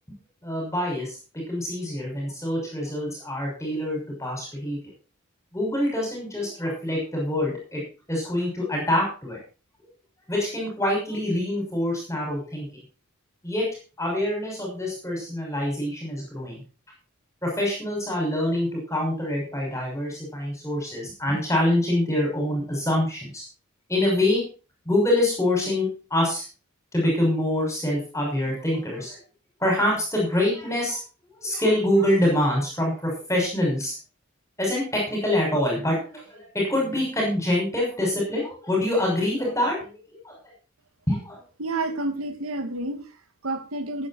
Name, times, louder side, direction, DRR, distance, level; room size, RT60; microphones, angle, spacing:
voice 1, 0.4-4.8 5.5-7.8 8.1-9.4 10.3-12.7 13.4-13.6 14.0-16.6 17.4-23.4 23.9-24.4 24.8-26.4 26.9-29.2 29.6-31.0 31.4-33.9 34.6-40.4 41.1-41.4, left 1 dB, 15° left, -1 dB, 6.2 m, -25 dB
voice 2, 41.6-44.1, right 2 dB, 90° right, 7 dB, 2.2 m, -30 dB
16.5 x 9.6 x 4.4 m, 0.35 s
head